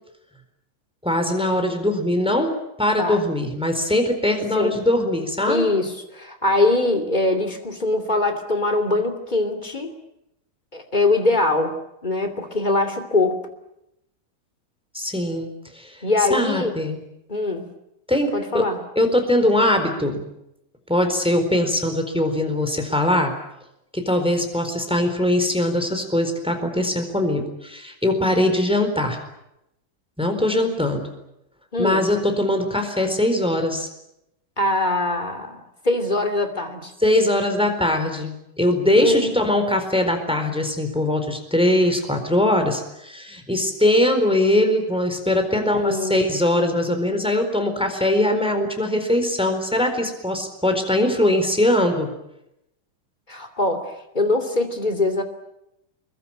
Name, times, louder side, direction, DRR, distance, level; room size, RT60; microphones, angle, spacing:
voice 1, 1.0-5.7 14.9-16.0 16.3-17.0 18.1-18.6 19.0-20.2 20.9-23.3 23.9-29.2 30.2-31.1 31.8-33.9 37.0-52.1, left 1 dB, ahead, 6 dB, 3.4 m, -21 dB
voice 2, 5.5-9.9 10.7-11.7 12.0-13.4 16.0-16.7 17.3-17.7 18.3-18.8 31.7-32.1 34.6-36.9 38.9-39.4 45.6-46.2 53.3-55.2, left 2 dB, 15° left, 6 dB, 1.8 m, -22 dB
25.5 x 22.5 x 8.9 m, 0.85 s
omnidirectional pair, 5.2 m